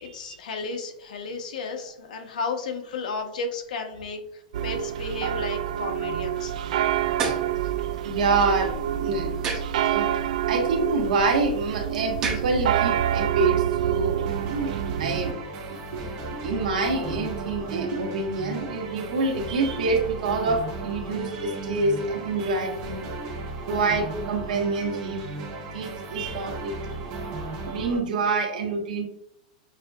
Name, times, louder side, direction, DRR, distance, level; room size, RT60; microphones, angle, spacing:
voice 1, 0.0-6.7, left 4 dB, 90° left, 4 dB, 1.0 m, -33 dB
sound 1, 4.5-15.3, right 11 dB, 70° right, 0.3 m, -27 dB
sound 2, 6.8-13.3, right 4 dB, 20° right, 0.6 m, -36 dB
voice 2, 8.0-9.3 9.9-10.1 10.5-14.7 15.0-15.4 15.7-16.0 16.4-23.1 23.7-25.3 25.7-27.1 27.7-29.1, right 3 dB, 90° right, 2 dB, 1.2 m, -27 dB
sound 3, 14.3-28.0, right 3 dB, 35° right, 1.1 m, -35 dB
6.0 x 2.7 x 2.3 m, 0.75 s
supercardioid pair, 175°, 4 cm